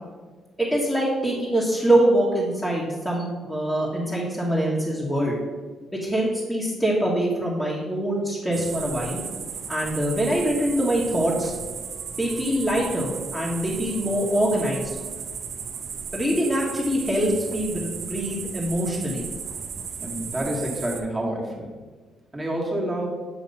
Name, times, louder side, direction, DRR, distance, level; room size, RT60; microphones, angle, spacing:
voice 1, 0.6-5.4 6.0-9.2 9.7-11.5 12.2-15.0 16.1-19.2, right 1 dB, 5° left, -7 dB, 1.4 m, -24 dB
sound 1, 8.5-21.0, right 6 dB, 65° right, 0.7 m, -35 dB
voice 2, 20.0-21.8 22.3-23.1, right 1 dB, 15° right, -2 dB, 1.5 m, -28 dB
8.1 x 2.9 x 5.4 m, 1.4 s
cardioid pair, 90°, 0 cm